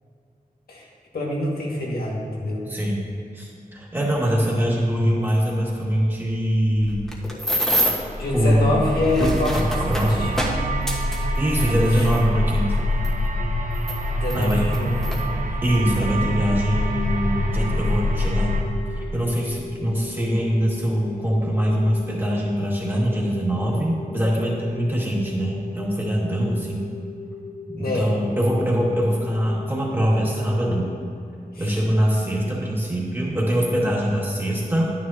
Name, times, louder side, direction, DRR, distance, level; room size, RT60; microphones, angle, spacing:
voice 1, 1.1-2.6 8.2-9.7 10.0-10.3 11.9-12.0 14.1-15.1 27.8-28.1 31.6-31.8, left 1 dB, 90° left, -3 dB, 1.8 m, -25 dB
voice 2, 2.7-3.0 3.3-7.1 8.3-8.8 9.2-10.4 11.4-12.8 14.3-14.7 15.6-18.6 18.9-26.8 27.7-30.9 31.6-34.8, equal, 15° right, -4 dB, 2.0 m, -23 dB
sound 1, 6.8-8.1 8.9-12.2 13.0-13.1 13.7-15.2 16.0-16.1 16.5-16.8, right 1 dB, ahead, 1.3 m, -27 dB
sound 2, 7.9-18.6, equal, 60° right, 0.9 m, -25 dB
sound 3, 16.8-31.1, left 4 dB, 60° left, 1.9 m, -39 dB
11.0 x 9.7 x 2.8 m, 2.4 s
wide cardioid pair, 110°, 15 cm